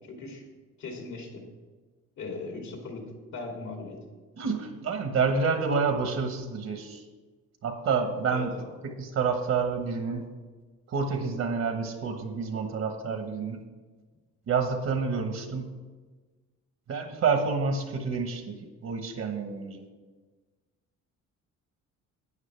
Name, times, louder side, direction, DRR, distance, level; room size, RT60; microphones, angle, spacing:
voice 1, 0.1-0.4 0.8-1.4 2.2-3.0 3.3-4.0 8.3-8.7, left 3 dB, 70° left, 0 dB, 3.0 m, -38 dB
voice 2, 4.4-7.0 7.6-8.5 9.0-10.2 10.9-13.6 14.5-15.7 16.9-18.5 18.8-19.8, right 5 dB, 60° right, 6 dB, 1.4 m, -28 dB
12.5 x 9.1 x 3.4 m, 1.3 s
cardioid pair, 90°, 30 cm